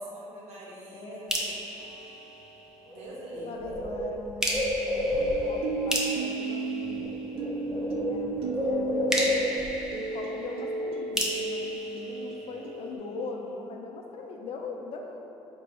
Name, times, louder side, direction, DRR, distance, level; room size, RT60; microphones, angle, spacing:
voice 1, 0.0-1.3 2.9-3.8, right 1 dB, 85° right, -4 dB, 0.8 m, -43 dB
voice 2, 0.9-1.6 3.4-7.2 8.1-9.6 9.9-15.4, left 3 dB, 65° left, 1 dB, 0.5 m, -40 dB
sound 1, 1.3-3.0 4.4-7.7 9.1-13.0, equal, 5° right, 0.6 m, -35 dB
sound 2, 1.8-2.6 5.2-13.0, right 4 dB, 65° right, 0.4 m, -35 dB
Bird, 2.9-3.0 3.3-5.8 6.8-7.1 7.3-9.8, left 1 dB, 35° right, 1.2 m, -30 dB
4.4 x 3.0 x 3.0 m, 2.8 s
cardioid pair, 105°, 11 cm